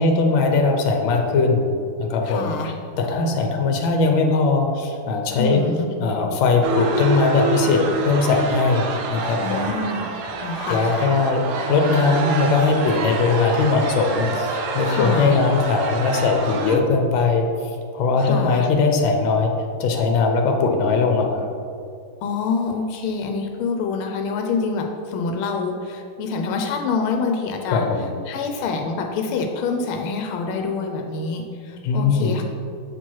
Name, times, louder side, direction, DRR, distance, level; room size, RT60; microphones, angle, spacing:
voice 1, 0.0-1.7 2.0-2.5 3.0-5.6 6.0-9.7 10.7-17.5 17.9-19.5 19.8-21.5 27.7-28.1 31.8-32.4, left 4 dB, 70° left, 3 dB, 1.5 m, -20 dB
voice 2, 2.2-2.7 5.4-5.9 9.4-10.1 10.4-11.1 14.9-15.4 18.2-18.7 22.2-27.9 28.3-32.4, left 4 dB, 90° left, 3 dB, 1.5 m, -26 dB
sound 1, 6.6-16.8, right 3 dB, 70° right, 1.0 m, -27 dB
7.4 x 4.5 x 4.5 m, 2.4 s
omnidirectional pair, 2.3 m